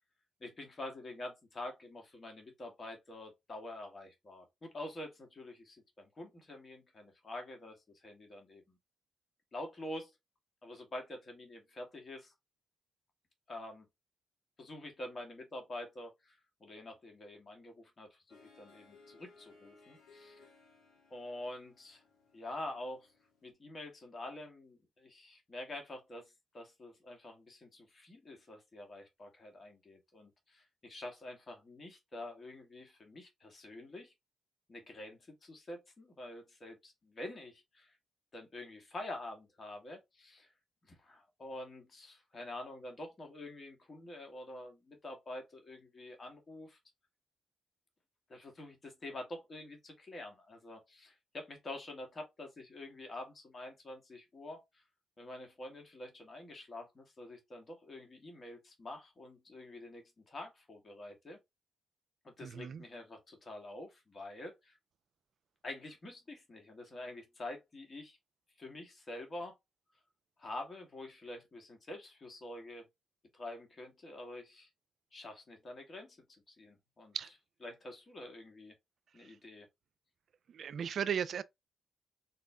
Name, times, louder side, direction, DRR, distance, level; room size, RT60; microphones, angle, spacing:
voice 1, 0.4-8.7 9.5-10.1 10.6-12.3 13.5-13.9 14.6-20.4 21.1-22.0 22.3-23.1 23.4-34.1 34.7-38.0 38.3-40.5 40.9-46.8 48.3-54.8 55.2-61.4 62.2-64.8 65.6-68.2 68.6-69.5 70.4-72.9 73.3-74.7 75.1-77.1 77.6-78.7 79.1-79.7, left 1 dB, 45° left, 1.4 m, -47 dB
Harp, 18.3-23.5, left 3 dB, 85° left, 1.4 m, -62 dB
voice 2, 62.4-62.8 77.1-77.3 80.5-81.4, right 8 dB, 65° right, 0.3 m, -36 dB
4.2 x 2.1 x 3.3 m
hypercardioid pair, 50°, 0 cm